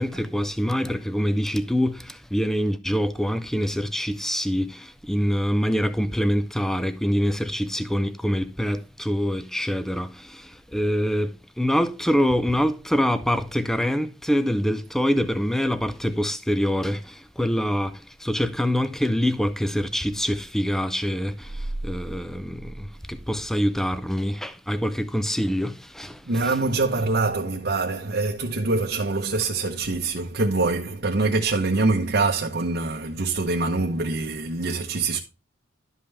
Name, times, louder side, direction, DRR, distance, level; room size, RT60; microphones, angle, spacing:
voice 1, 0.0-26.2, equal, ahead, 0.5 m, -25 dB
voice 2, 26.3-35.2, right 3 dB, 55° right, 0.9 m, -24 dB
12.0 x 5.5 x 3.3 m
head